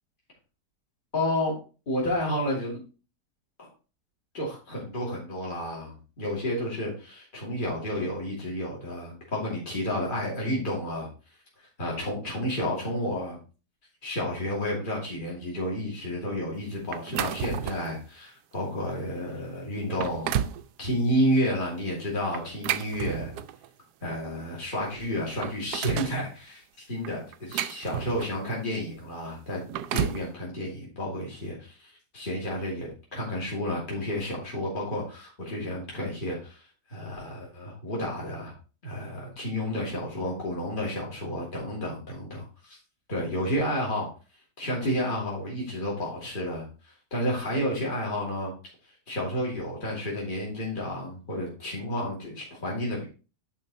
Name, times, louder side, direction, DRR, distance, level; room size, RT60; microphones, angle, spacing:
voice 1, 1.1-1.6 1.9-2.8 3.6-3.7 4.3-11.1 11.8-13.4 14.0-20.3 20.8-23.3 24.0-29.6 29.9-36.6 36.9-38.5 38.8-42.8 43.1-44.1 44.6-46.7 47.1-48.5 49.1-53.0, equal, 30° left, -4 dB, 2.9 m, -31 dB
sound 1, 16.9-18.0 18.5-18.7 19.3-19.4 19.8-20.6 22.3-23.7 24.7-24.8 25.1-26.2 27.0-28.5 29.5-30.3, right 10 dB, 80° right, 1.2 m, -32 dB
10.5 x 4.5 x 4.1 m, 0.34 s
omnidirectional pair, 1.8 m